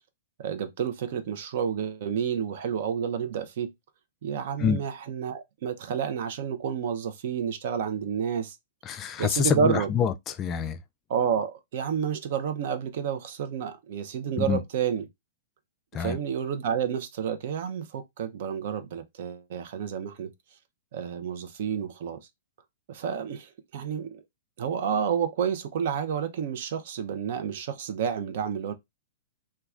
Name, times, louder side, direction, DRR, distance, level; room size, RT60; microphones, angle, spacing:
voice 1, 0.4-3.7 4.2-8.6 9.2-9.9 11.1-15.0 16.0-20.3 20.9-22.2 22.9-24.2 24.6-28.7, right 7 dB, 60° right, 0.5 m, -30 dB
voice 2, 8.8-10.8 14.4-14.6 15.9-16.2, left 8 dB, 25° left, 0.3 m, -26 dB
3.1 x 2.3 x 2.3 m
hypercardioid pair, 130°, 0 cm